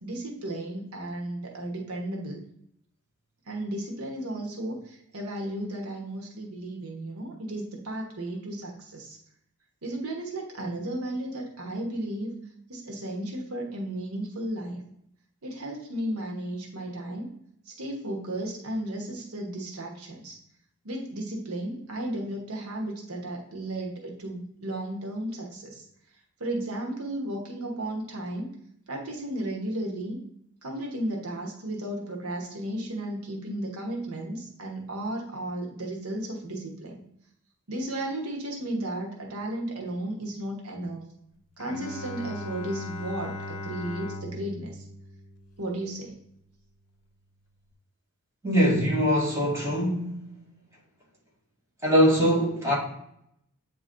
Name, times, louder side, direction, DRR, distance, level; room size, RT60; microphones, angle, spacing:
voice 1, 0.0-2.4 3.5-9.2 9.8-12.4 12.7-14.8 15.4-17.3 17.7-20.4 20.8-25.8 26.4-28.5 28.9-30.2 30.6-37.0 37.7-41.1 41.6-44.8 45.6-46.1, right 1 dB, 85° right, 1.2 m, -34 dB
Bowed string instrument, 41.6-46.1, left 1 dB, 80° left, 0.6 m, -39 dB
voice 2, 48.4-50.2 51.8-52.7, equal, 15° right, 2.2 m, -22 dB
8.3 x 3.0 x 3.8 m
head